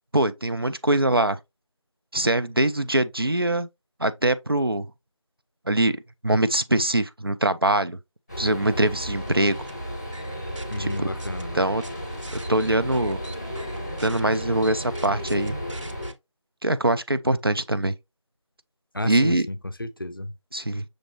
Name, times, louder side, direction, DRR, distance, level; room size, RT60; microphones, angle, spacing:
voice 1, 0.1-1.4 2.1-3.7 4.0-4.9 5.7-8.0 8.4-9.6 10.8-10.9 11.5-11.8 12.3-13.2 14.0-15.6 16.6-17.9 19.0-19.5 20.5-20.8, right 1 dB, 50° right, 0.4 m, -23 dB
sound 1, 8.3-16.1, equal, 10° left, 0.8 m, -33 dB
sound 2, 9.3-9.7 10.1-11.4 11.8-16.1, right 2 dB, 70° right, 0.8 m, -44 dB
voice 2, 10.7-11.8 18.9-20.3, left 1 dB, 45° left, 0.5 m, -32 dB
6.3 x 2.9 x 2.9 m
figure-of-eight pair, 170°, 16 cm